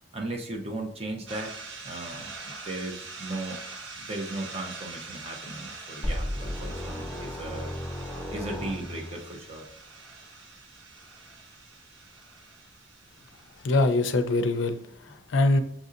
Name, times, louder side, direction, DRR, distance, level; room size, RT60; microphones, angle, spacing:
voice 1, 0.1-1.5 1.8-3.6 3.9-7.7 8.3-9.7, right 2 dB, 30° right, 2 dB, 0.6 m, -36 dB
sound 1, 1.3-14.6, right 4 dB, 85° right, 0.9 m, -44 dB
sound 2, 6.0-9.3, equal, 5° left, 1.2 m, -34 dB
voice 2, 13.6-15.6, left 2 dB, 75° left, 9 dB, 0.5 m, -24 dB
7.1 x 2.6 x 2.5 m, 0.73 s
head